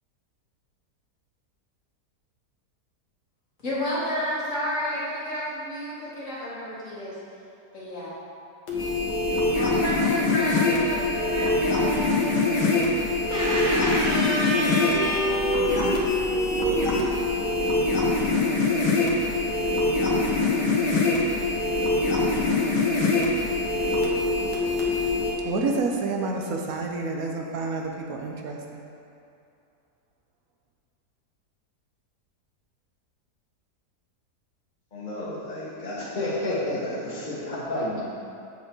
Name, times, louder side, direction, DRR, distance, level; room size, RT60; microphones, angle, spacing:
voice 1, 3.6-7.1 7.7-8.1 9.5-12.4 13.3-15.6, equal, 45° left, -9 dB, 2.6 m, -29 dB
sound 1, 8.7-25.3, left 2 dB, 85° left, 1.9 m, -23 dB
voice 2, 25.4-28.8, right 3 dB, 65° right, 1 dB, 1.2 m, -29 dB
voice 3, 34.9-38.0, left 1 dB, 30° left, -7 dB, 1.6 m, -30 dB
7.6 x 7.0 x 4.0 m, 2.6 s
omnidirectional pair, 1.8 m